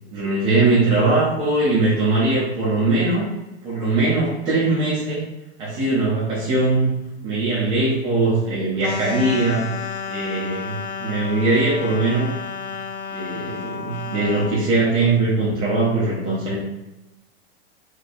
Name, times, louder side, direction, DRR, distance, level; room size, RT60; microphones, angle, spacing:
voice 1, 0.1-3.3 3.6-5.2 5.6-7.0 7.2-12.3 13.1-16.6, right 2 dB, 15° right, -8 dB, 0.7 m, -21 dB
sound 1, 8.8-14.6, left 5 dB, 40° left, 0.4 m, -31 dB
3.3 x 2.2 x 4.1 m, 0.97 s
supercardioid pair, 155°, 33 cm